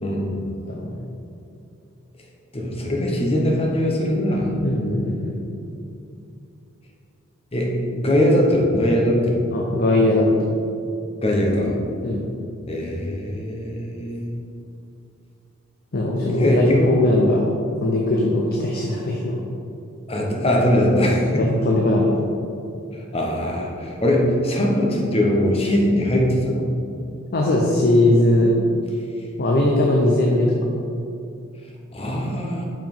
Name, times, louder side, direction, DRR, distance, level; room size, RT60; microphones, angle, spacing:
voice 1, 0.0-0.5 2.5-4.6 7.5-9.5 11.2-11.8 12.7-14.4 16.2-16.9 20.1-21.5 22.9-26.7 31.9-32.7, left 1 dB, 30° left, -1 dB, 1.0 m, -21 dB
voice 2, 4.6-5.4 9.5-10.6 12.0-12.2 15.9-17.5 17.8-19.4 21.4-22.2 27.3-28.6 29.4-30.7, left 1 dB, 50° left, -1 dB, 0.7 m, -20 dB
5.6 x 4.9 x 5.4 m, 2.5 s
head